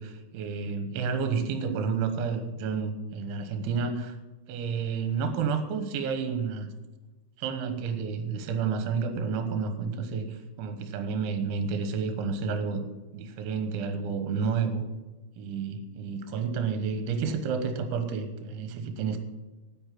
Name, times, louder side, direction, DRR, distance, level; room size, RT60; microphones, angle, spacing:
voice 1, 0.0-4.2 4.5-6.7 7.4-12.9 13.1-14.9 15.4-19.2, right 5 dB, 75° right, 8 dB, 3.5 m, -30 dB
9.7 x 8.9 x 7.6 m, 1.2 s
omnidirectional pair, 5.6 m